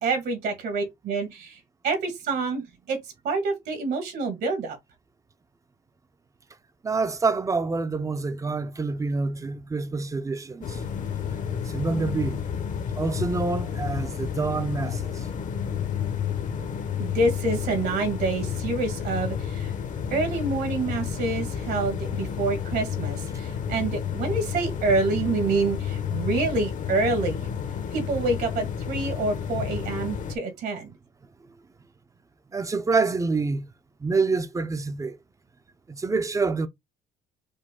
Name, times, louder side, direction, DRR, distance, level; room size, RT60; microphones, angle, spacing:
voice 1, 0.0-1.6 1.8-3.0 3.2-4.8 17.0-19.7 20.1-27.5 27.9-30.9, right 3 dB, 70° right, 1.8 m, -27 dB
voice 2, 6.8-10.8 11.7-12.5 12.9-15.3 32.5-33.7 34.0-35.2 35.9-36.7, right 4 dB, 20° right, 0.5 m, -27 dB
sound 1, 10.6-30.4, left 8 dB, 50° left, 0.8 m, -31 dB
5.1 x 2.2 x 3.6 m
cardioid pair, 110°, 17 cm